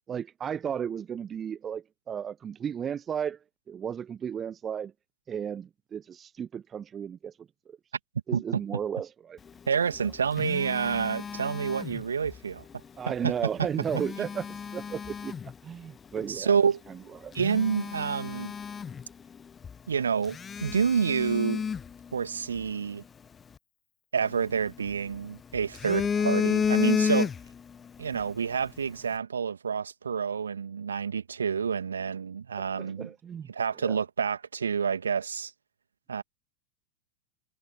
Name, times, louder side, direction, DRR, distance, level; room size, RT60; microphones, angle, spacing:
voice 1, 0.1-3.4 3.7-4.9 5.3-7.3 8.3-9.4 13.0-15.3 15.6-16.5 17.2-17.4 32.8-33.5 33.8-34.0, right 8 dB, 25° right, 0.9 m, -34 dB
voice 2, 9.7-12.6 13.2-13.3 16.3-16.8 17.3-18.5 19.9-21.6 22.1-23.0 24.1-27.3 28.0-33.1 33.5-35.5 36.1-36.2, right 6 dB, 70° right, 2.5 m, -28 dB
Telephone, 9.8-12.4 13.6-15.5 16.2-16.3 16.9-17.0 17.3-19.4 19.6-19.8 20.3-22.7 24.2-25.2 25.6-27.7 28.0-28.2, left 6 dB, 20° left, 0.8 m, -31 dB
figure-of-eight pair, 90°, 0 cm